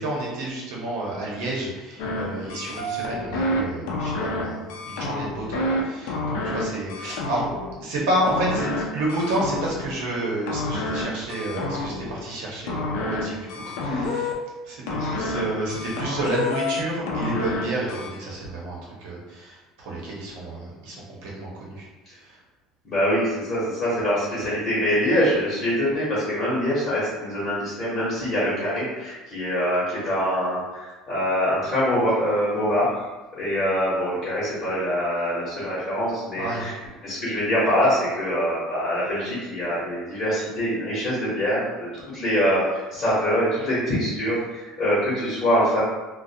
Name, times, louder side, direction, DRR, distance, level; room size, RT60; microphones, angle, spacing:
voice 1, 0.0-7.4 7.8-14.3 14.6-21.9 22.2-22.4 36.4-36.6, right 1 dB, 80° right, -4 dB, 0.8 m, -30 dB
sound 1, 2.0-2.2 2.5-3.6 3.9-4.4 4.7-5.8 6.1-6.6 6.9-7.7 8.3-8.8 9.1-9.9 10.5-11.0 11.3-12.1 12.7-13.2 13.5-14.3 14.9-15.4 15.7-16.8 17.1-17.6 17.9-18.1, left 2 dB, 80° left, 0.4 m, -28 dB
voice 2, 22.8-32.9 33.4-36.7 37.0-45.8, equal, 30° left, -10 dB, 0.8 m, -24 dB
2.4 x 2.2 x 2.7 m, 1.2 s
cardioid pair, 175°, 0 cm